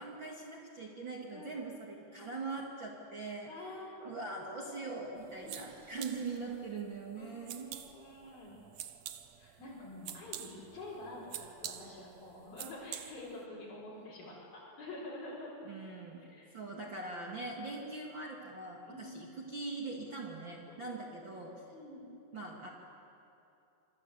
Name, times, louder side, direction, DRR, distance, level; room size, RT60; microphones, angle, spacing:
voice 1, 0.0-7.7 15.6-16.2 16.5-21.6 22.3-22.7, right 3 dB, 40° right, -1 dB, 2.4 m, -42 dB
voice 2, 1.3-2.4 3.5-4.1 4.4-5.0 5.3-5.5 5.9-6.5 7.2-8.6 9.4-15.5 16.2-16.5 18.9-19.3 20.8-20.9 21.3-21.4 21.7-22.1, left 2 dB, 85° left, -7 dB, 6.9 m, -48 dB
sound 1, 5.2-6.4, right 2 dB, 20° right, 3.9 m, -63 dB
sound 2, 5.2-13.5, right 10 dB, 65° right, 1.9 m, -48 dB
26.5 x 25.5 x 8.2 m, 2.8 s
omnidirectional pair, 4.0 m